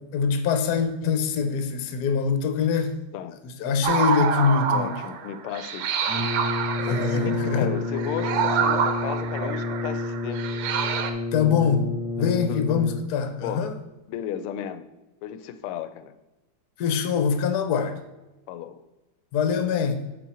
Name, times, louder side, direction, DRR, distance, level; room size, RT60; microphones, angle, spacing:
voice 1, 0.1-3.0 3.4-5.0 6.8-7.7 11.3-11.9 12.2-13.7 16.8-18.0 19.3-20.0, left 6 dB, 60° left, 7 dB, 1.1 m, -24 dB
sound 1, 3.8-11.1, right 7 dB, 85° right, 1.7 m, -27 dB
voice 2, 4.7-6.2 6.5-10.4 12.5-12.6 13.4-13.7 14.1-14.9 15.2-16.1 18.5-18.8, left 10 dB, 80° left, 11 dB, 1.5 m, -34 dB
Brass instrument, 6.1-13.2, left 3 dB, 5° right, 1.4 m, -30 dB
6.9 x 5.5 x 4.2 m, 1.1 s
omnidirectional pair, 2.4 m